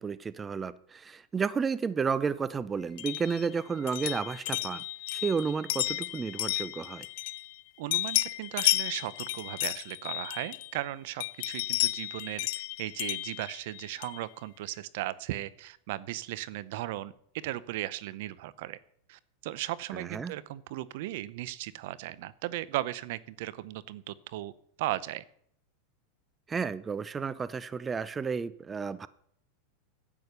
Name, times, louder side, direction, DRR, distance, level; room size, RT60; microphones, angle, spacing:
voice 1, 0.0-4.8 5.1-7.1 19.9-20.3 26.5-29.1, right 5 dB, 20° right, 17 dB, 0.5 m, -32 dB
sound 1, 3.0-7.6 7.9-10.8 11.2-14.3, left 19 dB, 65° left, 0.5 m, -33 dB
voice 2, 7.8-17.1 17.4-18.8 19.1-24.5 24.8-25.2, right 15 dB, 65° right, 19 dB, 0.6 m, -37 dB
10.5 x 8.5 x 6.8 m, 0.67 s
supercardioid pair, 125°, 0 cm